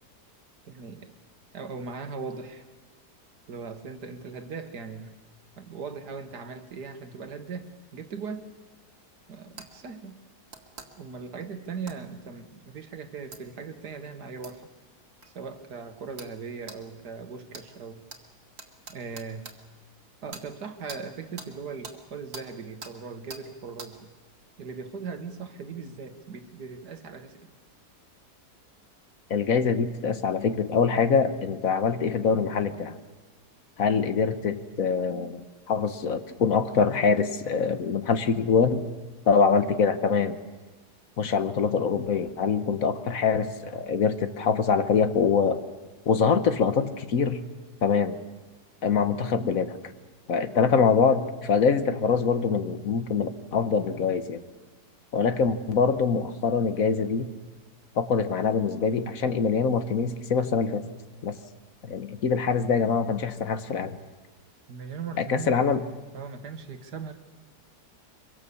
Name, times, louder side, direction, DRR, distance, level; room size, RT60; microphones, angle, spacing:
voice 1, 0.7-1.1 1.5-2.7 3.5-5.1 5.6-8.5 9.3-10.2 11.0-14.7 15.3-18.1 18.9-19.5 20.2-24.0 24.6-27.5 64.7-65.7 66.1-67.1, right 5 dB, 85° right, 8 dB, 2.1 m, -39 dB
sound 1, 9.6-9.7 10.5-10.9 11.9-12.0 13.3-13.4 14.4-14.6 15.2-15.3 16.2-16.3 16.7-16.8 17.5-17.7 18.1-18.2 18.6-19.6 20.3-20.5 20.9-21.0 21.4-21.5 21.8-22.0 22.3-22.5 22.8-22.9 23.3-23.4 23.8-23.9, right 4 dB, 65° right, 2.4 m, -42 dB
voice 2, 29.3-32.9 33.8-38.8 39.3-40.4 41.2-45.6 46.1-47.4 47.8-48.2 48.8-49.7 50.3-54.4 55.1-57.3 57.9-60.9 61.2-61.4 61.8-64.0 65.2-65.8, left 5 dB, 60° left, 10 dB, 1.5 m, -24 dB
24.5 x 23.5 x 7.0 m, 1.3 s
omnidirectional pair, 1.7 m